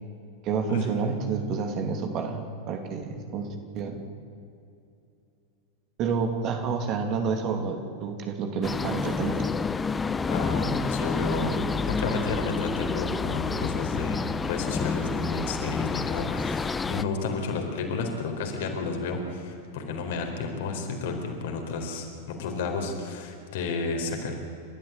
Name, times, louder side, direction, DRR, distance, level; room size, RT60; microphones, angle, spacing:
voice 1, 0.4-4.0 6.0-9.4, right 5 dB, 35° right, 5 dB, 2.8 m, -29 dB
sound 1, 8.6-17.0, left 4 dB, 15° left, 0.7 m, -29 dB
voice 2, 10.3-11.6 11.8-24.3, left 4 dB, 55° left, 3 dB, 4.1 m, -31 dB
30.0 x 13.5 x 8.7 m, 2.7 s
figure-of-eight pair, 90°, 0 cm